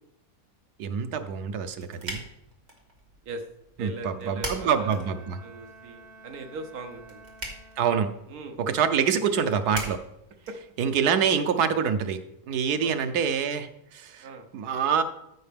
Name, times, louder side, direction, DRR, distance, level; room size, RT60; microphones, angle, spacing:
voice 1, 0.8-2.2 3.8-5.4 7.8-8.1 8.7-10.0 10.8-12.2 12.5-14.3 14.5-15.0, right 7 dB, 85° right, 9 dB, 1.3 m, -26 dB
sound 1, 1.3-11.2, right 1 dB, 30° right, 2.0 m, -43 dB
voice 2, 3.8-5.1 5.4-7.2 8.3-8.6 10.5-10.6 12.8-13.1 14.2-14.5, right 2 dB, 70° right, 4 dB, 1.5 m, -39 dB
Bowed string instrument, 4.2-8.3, right 3 dB, 65° left, 4.1 m, -51 dB
14.0 x 5.7 x 3.4 m, 0.83 s
omnidirectional pair, 1.6 m